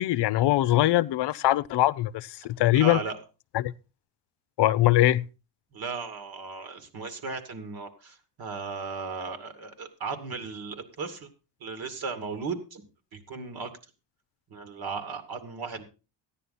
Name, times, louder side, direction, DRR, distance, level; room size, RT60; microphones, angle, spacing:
voice 1, 0.0-3.0 3.5-3.7 4.6-5.2, left 15 dB, 65° left, 0.6 m, -22 dB
voice 2, 2.7-3.2 5.7-11.3 11.6-12.8 13.1-13.7 14.5-15.8, right 4 dB, 55° right, 2.6 m, -36 dB
14.0 x 10.0 x 4.2 m
cardioid pair, 115°, 44 cm